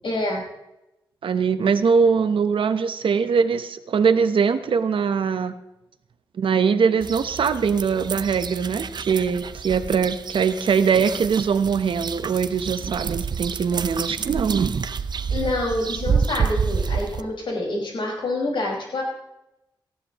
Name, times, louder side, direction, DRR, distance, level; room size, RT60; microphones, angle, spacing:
voice 1, 0.0-0.4 15.3-19.0, left 2 dB, 75° left, -3 dB, 5.2 m, -27 dB
voice 2, 1.2-5.5 6.3-14.7, right 6 dB, 90° right, 10 dB, 0.9 m, -22 dB
sound 1, 7.0-17.2, right 6 dB, 55° right, 0.6 m, -28 dB
19.0 x 14.5 x 3.0 m, 0.92 s
wide cardioid pair, 145°, 9 cm